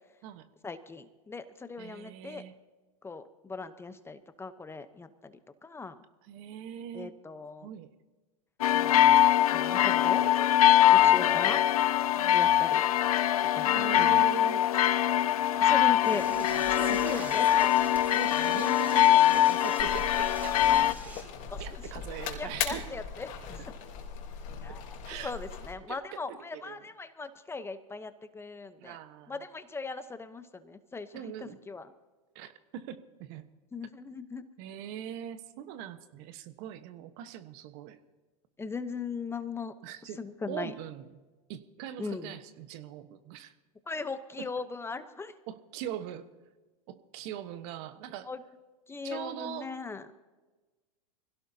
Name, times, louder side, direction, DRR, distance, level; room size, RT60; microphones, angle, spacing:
voice 1, 0.6-2.4 3.0-5.3 5.6-6.0 6.9-7.7 8.7-9.2 9.5-10.2 11.0-11.6 12.3-12.8 13.5-14.2 15.6-16.3 16.7-17.7 21.5-21.8 22.4-23.3 24.6-24.8 25.2-29.0 29.3-31.9 33.7-34.4 38.6-39.7 40.2-40.7 42.0-42.3 43.9-45.3 48.3-48.4 48.9-50.2, left 4 dB, 15° left, 11 dB, 0.9 m, -39 dB
voice 2, 1.8-2.5 6.2-7.2 7.6-7.9 11.0-11.6 12.2-12.6 13.7-14.7 16.3-17.4 18.1-21.2 21.6-22.9 24.7-24.8 25.0-25.4 25.9-26.9 28.8-29.4 31.1-31.6 32.3-33.5 34.6-38.0 39.8-41.1 41.5-43.5 44.4-44.5 45.5-46.3 46.9-48.3 49.0-49.7, right 10 dB, 55° right, 10 dB, 1.2 m, -42 dB
sound 1, 8.6-20.9, left 12 dB, 90° left, 0.5 m, -23 dB
Door / Toilet flush, 16.0-21.2, right 1 dB, 10° right, 4.7 m, -44 dB
sound 2, 19.8-25.7, left 6 dB, 50° left, 3.3 m, -39 dB
24.5 x 17.0 x 2.8 m, 1.2 s
hypercardioid pair, 110°, 18 cm